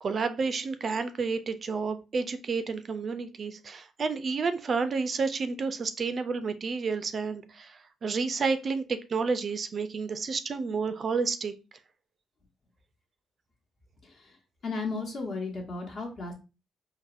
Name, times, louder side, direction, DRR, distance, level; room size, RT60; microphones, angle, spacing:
voice 1, 0.0-11.5, right 4 dB, 45° right, 10 dB, 0.3 m, -30 dB
voice 2, 14.0-14.4 14.6-16.3, left 3 dB, 50° left, 0 dB, 1.0 m, -34 dB
4.0 x 2.1 x 2.4 m, 0.30 s
cardioid pair, 90°, 0 cm